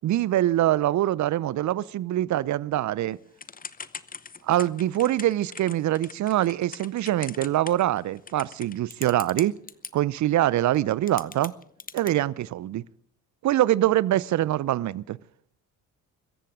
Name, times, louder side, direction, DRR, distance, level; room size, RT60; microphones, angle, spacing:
voice 1, 0.0-3.2 4.4-9.5 9.9-11.5 11.9-12.8 13.4-15.2, right 13 dB, 45° right, 23 dB, 0.6 m, -24 dB
Typing / Telephone, 3.4-9.9 10.7-10.8 11.1-12.1, left 5 dB, 20° left, 0.8 m, -40 dB
24.5 x 14.0 x 3.7 m, 0.64 s
hypercardioid pair, 50°, 42 cm